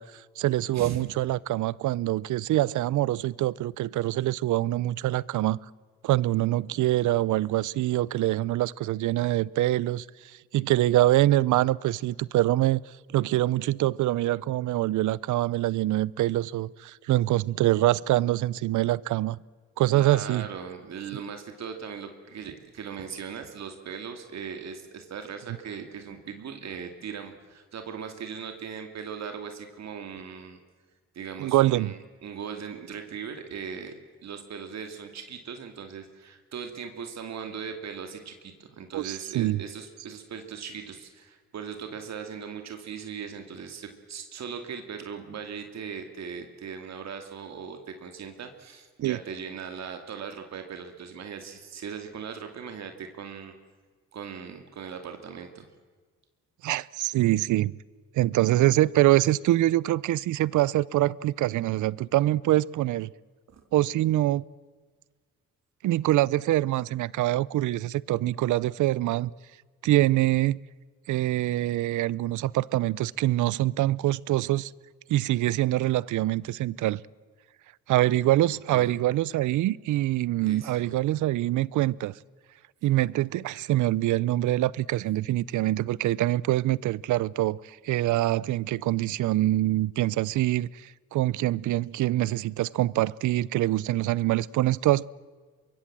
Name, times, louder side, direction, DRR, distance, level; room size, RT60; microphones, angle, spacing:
voice 1, 0.0-5.6 6.0-12.8 13.1-19.4 19.8-20.5 31.4-31.9 38.9-39.6 49.0-49.2 56.6-57.7 58.1-63.1 63.7-64.4 65.8-69.3 69.8-70.6 71.1-74.7 75.1-77.0 77.9-82.1 82.8-95.0, right 15 dB, 75° right, 0.7 m, -25 dB
voice 2, 19.9-30.6 31.1-53.5 54.1-55.7 63.5-63.6 78.7-78.9 80.4-80.9, right 6 dB, 60° right, 2.7 m, -39 dB
24.5 x 22.5 x 7.5 m
cardioid pair, 90°, 30 cm